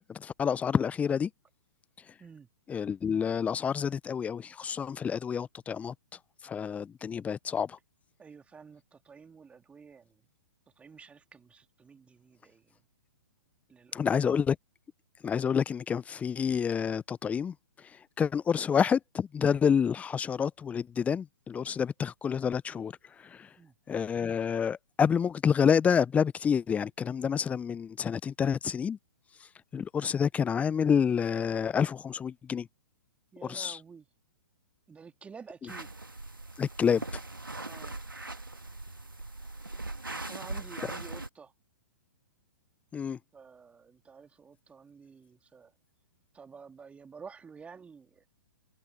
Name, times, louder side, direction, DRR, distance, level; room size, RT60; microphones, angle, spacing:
voice 1, 0.1-1.3 2.7-5.9 6.4-7.8 13.9-14.6 15.2-17.5 18.2-22.9 23.2-23.5 23.9-29.0 29.7-32.7 33.4-33.8 36.6-37.0 42.9-43.2, left 7 dB, 10° left, 0.7 m, -28 dB
voice 2, 8.2-10.2 10.8-12.8 13.7-14.3 23.6-23.7 33.3-34.1 34.9-35.9 37.6-38.0 40.1-41.5 43.3-45.7 46.3-48.2, right 5 dB, 10° right, 3.1 m, -51 dB
sound 1, 35.7-41.3, right 2 dB, 90° right, 2.2 m, -40 dB
figure-of-eight pair, 120°, 11 cm